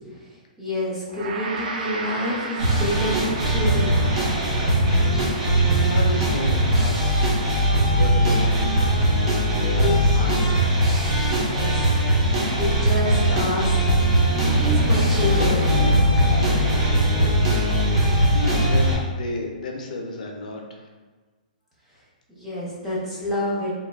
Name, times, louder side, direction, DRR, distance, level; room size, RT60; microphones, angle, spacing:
voice 1, 0.0-4.2 9.7-10.8 11.4-12.0 12.5-14.0 14.6-16.0 22.3-23.7, left 1 dB, 5° right, -8 dB, 0.5 m, -28 dB
Gong, 1.1-10.5, right 3 dB, 70° right, 0.4 m, -37 dB
sound 1, 2.6-18.9, right 1 dB, 45° right, 0.8 m, -20 dB
voice 2, 5.8-7.3 7.7-8.8 9.5-10.2 11.5-11.6 17.6-17.8 18.3-20.8, left 2 dB, 60° left, 1 dB, 0.4 m, -33 dB
sound 2, 12.8-18.5, left 2 dB, 30° right, 1.1 m, -28 dB
3.1 x 2.1 x 2.2 m, 1.4 s
hypercardioid pair, 170°, 5 cm